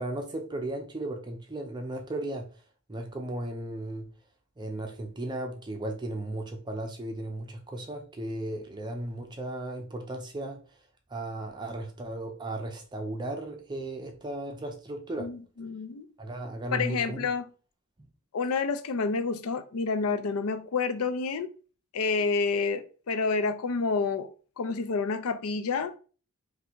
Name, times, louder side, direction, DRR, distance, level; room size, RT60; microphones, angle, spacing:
voice 1, 0.0-2.5 2.9-4.1 4.6-10.6 11.1-15.3 16.2-17.3, right 1 dB, 20° right, 0.5 m, -35 dB
voice 2, 15.2-16.1 16.7-17.4 18.3-21.5 21.9-24.3 24.6-25.9, left 4 dB, 85° left, 0.5 m, -29 dB
2.7 x 2.6 x 4.2 m
head